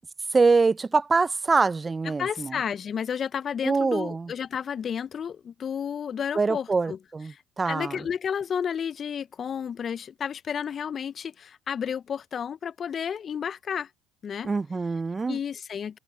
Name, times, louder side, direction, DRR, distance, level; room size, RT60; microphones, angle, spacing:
voice 1, 0.3-2.6 3.6-4.3 6.3-8.0 14.4-15.4, right 4 dB, 25° right, 0.3 m, -24 dB
voice 2, 2.2-7.0 7.3-13.9 14.2-14.5 15.3-16.0, left 7 dB, 40° left, 0.4 m, -32 dB
open air
hypercardioid pair, 75°, 0 cm